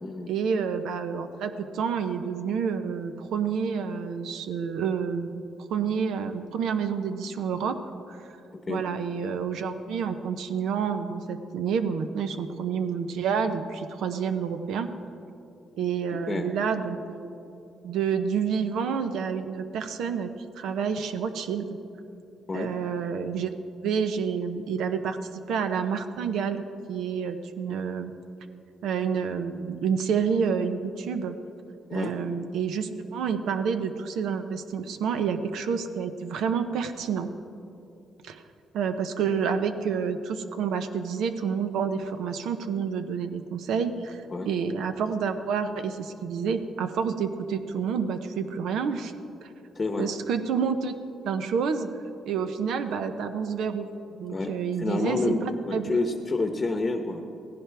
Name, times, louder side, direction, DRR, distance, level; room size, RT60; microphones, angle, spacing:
voice 1, 0.3-5.4 5.7-7.8 8.1-8.2 8.7-14.9 15.8-17.3 17.8-20.3 20.6-21.7 22.5-23.5 23.8-25.2 25.5-26.6 26.9-28.1 28.8-31.3 31.9-37.3 38.2-38.4 38.7-49.1 49.4-49.5 50.0-50.9 51.2-51.9 52.3-53.9 54.2-56.0, right 6 dB, 80° right, 8 dB, 0.8 m, -29 dB
voice 2, 49.7-50.1 54.3-55.4 55.7-57.2, left 3 dB, 30° left, 5 dB, 0.9 m, -28 dB
17.0 x 15.5 x 3.5 m, 2.8 s
cardioid pair, 90°, 0 cm